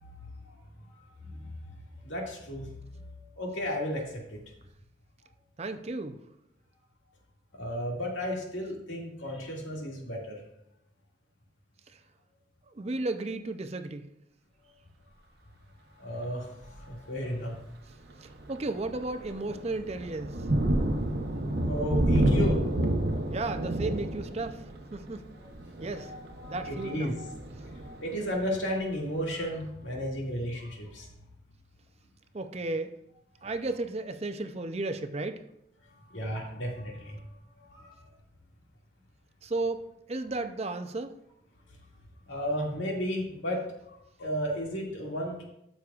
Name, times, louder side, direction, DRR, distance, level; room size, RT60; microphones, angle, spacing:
voice 1, 0.0-0.5 0.9-1.8 2.0-3.1 3.4-4.0 4.3-4.4 7.6-10.4 16.0-17.6 21.6-22.9 23.2-23.4 25.9-27.3 27.7-31.1 36.1-37.2 37.6-38.0 42.3-43.6 43.9-45.4, equal, 90° left, -2 dB, 2.2 m, -34 dB
voice 2, 5.6-6.2 12.7-14.1 18.2-20.4 23.3-24.6 24.9-25.2 25.8-26.1 26.5-27.2 32.3-32.9 33.4-35.4 39.4-41.1, right 2 dB, 35° right, 8 dB, 0.5 m, -34 dB
Thunder, 16.6-16.9 17.5-17.7 18.1-28.7, right 1 dB, 60° right, 0.9 m, -30 dB
13.0 x 6.4 x 2.4 m, 0.81 s
head